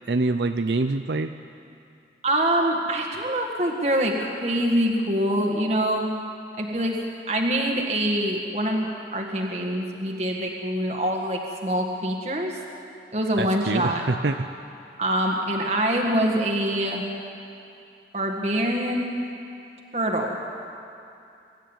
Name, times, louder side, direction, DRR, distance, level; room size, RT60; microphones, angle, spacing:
voice 1, 0.1-1.3 13.4-14.5, right 3 dB, 75° right, 8 dB, 0.6 m, -25 dB
voice 2, 2.2-6.1 6.6-7.0 7.3-12.6 13.1-14.0 15.0-17.0 18.1-19.2 19.9-20.4, right 1 dB, 40° right, 1 dB, 1.8 m, -25 dB
24.5 x 13.0 x 9.1 m, 2.7 s
head